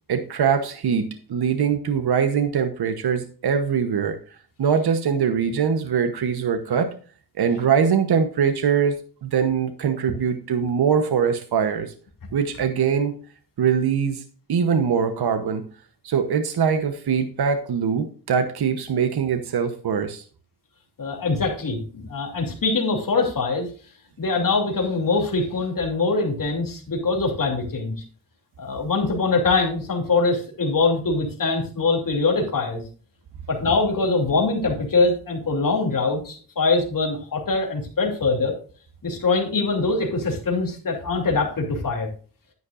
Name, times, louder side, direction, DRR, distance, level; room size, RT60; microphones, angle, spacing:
voice 1, 0.1-4.2 4.6-6.9 7.4-9.0 9.2-11.9 12.3-13.2 13.6-14.2 14.5-15.6 16.0-20.2, right 7 dB, 80° right, 8 dB, 1.0 m, -22 dB
voice 2, 21.0-23.7 24.2-27.9 28.6-32.8 33.5-38.5 39.0-42.1, left 3 dB, 55° left, 0 dB, 2.8 m, -23 dB
10.5 x 9.5 x 2.5 m, 0.40 s
wide cardioid pair, 90°, 38 cm